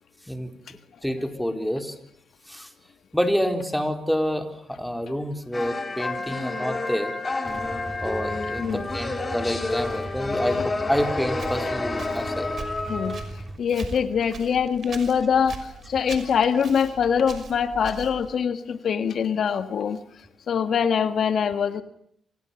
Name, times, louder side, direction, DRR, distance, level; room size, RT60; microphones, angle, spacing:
voice 1, 1.0-1.9 2.5-2.7 3.1-7.1 8.0-12.5, equal, ahead, 6 dB, 4.2 m, -28 dB
sound 1, 5.5-13.2, left 3 dB, 25° left, 4.3 m, -29 dB
Motorcycle / Engine starting / Idling, 7.4-13.6, right 2 dB, 20° right, 4.5 m, -38 dB
Walk footsteps, 11.3-18.3, right 5 dB, 50° right, 5.9 m, -42 dB
voice 2, 12.9-13.2 13.6-15.6 15.9-20.0 20.5-21.8, left 7 dB, 60° left, 10 dB, 1.6 m, -23 dB
28.5 x 27.0 x 7.1 m, 0.69 s
cardioid pair, 100°, 0 cm